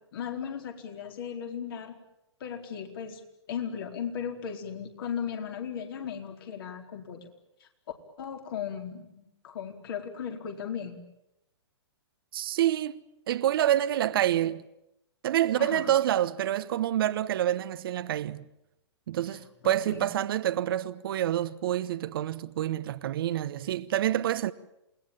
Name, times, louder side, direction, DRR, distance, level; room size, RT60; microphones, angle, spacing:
voice 1, 0.0-1.9 2.4-3.2 3.5-7.3 7.6-7.7 8.2-11.0 15.6-15.9 19.6-20.1, left 7 dB, 50° left, 4.4 m, -36 dB
voice 2, 12.3-14.6 15.2-18.4 19.1-24.5, right 12 dB, 50° right, 1.1 m, -27 dB
28.5 x 19.5 x 8.9 m
figure-of-eight pair, 120°, 15 cm